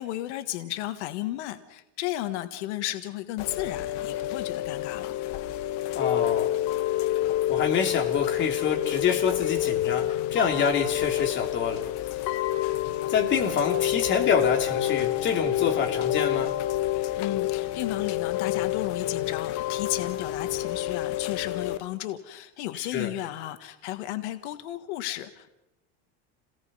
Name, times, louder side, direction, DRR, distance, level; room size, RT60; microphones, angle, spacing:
voice 1, 0.0-5.2 16.9-25.5, left 15 dB, 90° left, 9 dB, 1.6 m, -34 dB
Chime / Rain, 3.4-21.8, left 13 dB, 55° left, 1.1 m, -28 dB
voice 2, 5.9-6.5 7.5-11.8 13.1-16.5 22.7-23.1, left 6 dB, 35° left, 3 dB, 3.0 m, -27 dB
29.5 x 18.0 x 5.5 m, 0.90 s
cardioid pair, 160°, 33 cm